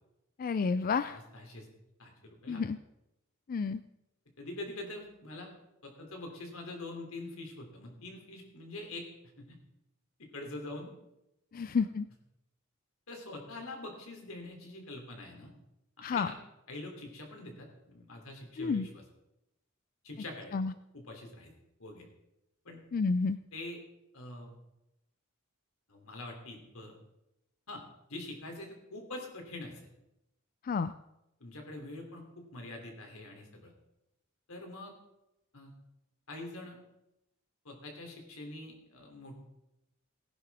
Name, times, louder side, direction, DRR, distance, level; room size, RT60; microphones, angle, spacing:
voice 1, 0.4-1.2 2.5-2.8 3.5-3.8 11.5-12.1 16.0-16.3 18.6-18.9 20.5-20.7 22.9-23.4 30.6-30.9, left 5 dB, 40° left, 13 dB, 0.3 m, -30 dB
voice 2, 1.1-1.7 2.0-2.6 4.4-5.5 5.8-9.1 9.4-9.6 10.2-10.9 11.5-11.7 13.1-15.5 16.1-16.4 16.7-19.0 20.0-20.6 20.9-21.5 21.8-22.1 22.6-22.8 23.5-23.8 24.1-24.5 25.9-26.9 27.7-27.8 28.1-29.9 31.4-33.7 34.5-34.9 35.5-35.7 36.3-36.8 37.6-39.4, left 2 dB, 80° left, 2 dB, 3.2 m, -44 dB
18.0 x 10.5 x 3.6 m, 0.90 s
head